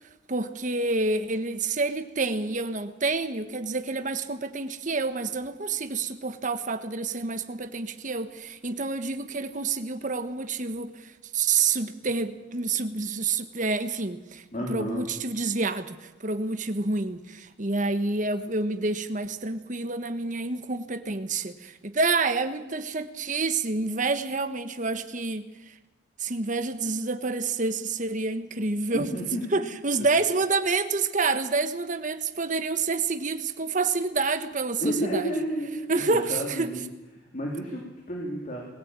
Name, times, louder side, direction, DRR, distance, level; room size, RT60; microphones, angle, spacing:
voice 1, 0.3-25.7 26.2-29.1 29.5-35.3 35.9-36.7, right 3 dB, 40° right, 10 dB, 1.3 m, -28 dB
voice 2, 14.5-15.1 28.9-29.7 30.0-30.1 34.8-36.8 37.3-38.7, equal, 40° left, 0 dB, 3.5 m, -31 dB
20.5 x 15.5 x 9.0 m, 1.1 s
head